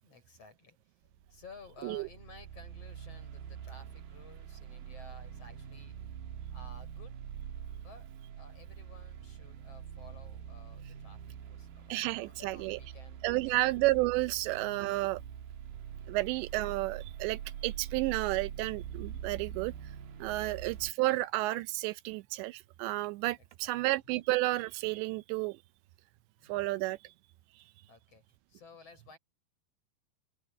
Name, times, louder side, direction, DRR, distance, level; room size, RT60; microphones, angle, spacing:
voice 1, 0.0-6.0 6.5-7.2 7.8-13.7 14.3-14.5 20.5-20.9 23.4-23.9 26.4-26.7 27.6-29.2, left 3 dB, 35° left, 7.3 m, -56 dB
sound 1, 1.1-20.9, right 9 dB, 65° right, 2.9 m, -44 dB
voice 2, 11.9-12.8 13.2-15.2 16.1-19.7 20.2-25.6 26.5-27.0, right 19 dB, 85° right, 2.9 m, -31 dB
open air
omnidirectional pair, 5.1 m